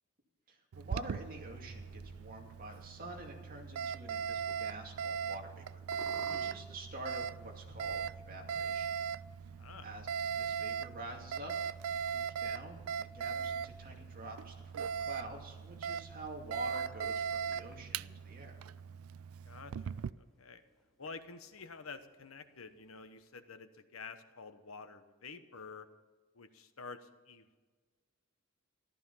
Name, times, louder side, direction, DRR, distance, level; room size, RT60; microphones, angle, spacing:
voice 1, 0.5-8.9 9.8-11.7 12.1-18.6, right 1 dB, 45° right, 0 dB, 2.5 m, -47 dB
Alarm, 0.7-20.1, right 7 dB, 80° right, 0.4 m, -39 dB
sound 1, 0.9-18.0, equal, 30° left, 5.6 m, -61 dB
sound 2, 5.0-23.2, equal, ahead, 3.2 m, -62 dB
voice 2, 9.6-9.9 19.4-20.6 21.0-25.9 26.3-27.6, left 4 dB, 75° left, 10 dB, 1.1 m, -49 dB
14.5 x 13.0 x 5.6 m, 1.4 s
head